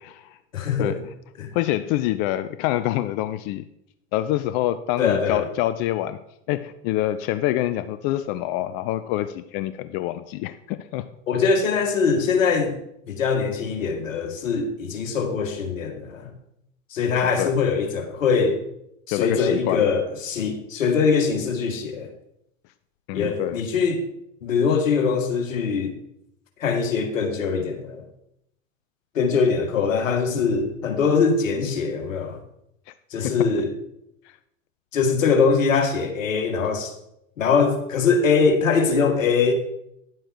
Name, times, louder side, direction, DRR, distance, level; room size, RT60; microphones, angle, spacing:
voice 1, 0.0-0.4 0.8-1.0 1.5-3.6 4.1-6.2 6.5-11.0 17.2-17.6 19.1-19.8 23.1-23.6 33.2-33.4, left 14 dB, 45° left, 11 dB, 0.6 m, -26 dB
voice 2, 0.5-0.9 1.4-1.5 5.0-5.5 11.3-12.8 13.1-16.3 16.9-18.6 19.1-22.1 23.1-24.0 24.4-25.9 26.6-28.0 29.2-32.4 33.1-33.7 34.9-36.9 37.4-39.5, left 5 dB, 75° left, 5 dB, 2.0 m, -22 dB
10.5 x 7.7 x 4.5 m, 0.80 s
hypercardioid pair, 90°, 39 cm